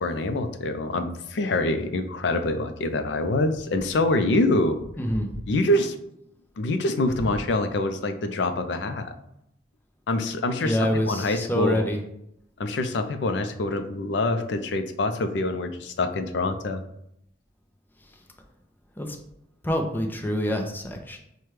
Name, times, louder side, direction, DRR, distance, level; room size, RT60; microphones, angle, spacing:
voice 1, 0.0-4.8 5.5-6.0 6.6-9.1 10.1-11.9 12.6-16.8, left 2 dB, 70° left, 8 dB, 0.4 m, -25 dB
voice 2, 5.0-5.3 10.6-12.0 19.0-19.2 19.6-21.2, equal, 10° left, 3 dB, 0.5 m, -26 dB
5.8 x 2.2 x 3.2 m, 0.78 s
head